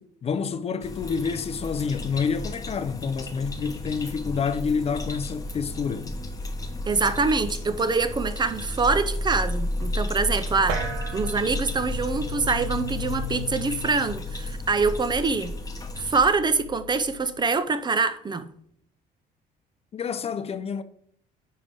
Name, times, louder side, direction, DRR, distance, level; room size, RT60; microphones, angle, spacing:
voice 1, 0.0-6.1 19.9-20.8, left 6 dB, 35° left, 0.5 m, -28 dB
sound 1, 0.8-16.3, left 1 dB, 20° left, 1.0 m, -33 dB
voice 2, 6.9-10.8 11.1-15.5 16.0-18.5, right 4 dB, 25° right, 0.6 m, -25 dB
sound 2, 10.7-17.4, left 3 dB, 90° right, 1.2 m, -36 dB
9.9 x 3.4 x 5.3 m
cardioid pair, 110°, 17 cm